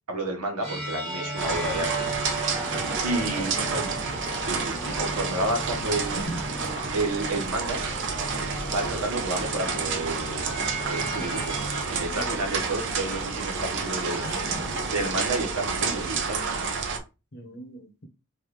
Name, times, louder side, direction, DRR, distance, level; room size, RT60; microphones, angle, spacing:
voice 1, 0.1-2.1 3.0-3.9 4.4-6.2 6.9-7.8 8.7-10.5 10.9-11.5 11.9-14.2 14.8-16.5, right 2 dB, 85° right, 1.4 m, -30 dB
sound 1, 0.6-11.8, right 2 dB, 30° right, 1.7 m, -37 dB
sound 2, 1.4-17.0, right 5 dB, 55° right, 0.7 m, -30 dB
sound 3, 2.5-16.1, equal, 15° right, 0.7 m, -42 dB
voice 2, 2.7-3.8 6.1-6.4 11.0-11.6 12.1-12.5 13.3-13.4 14.2-14.8 17.3-18.1, equal, 45° left, 0.8 m, -39 dB
4.7 x 2.7 x 3.2 m
head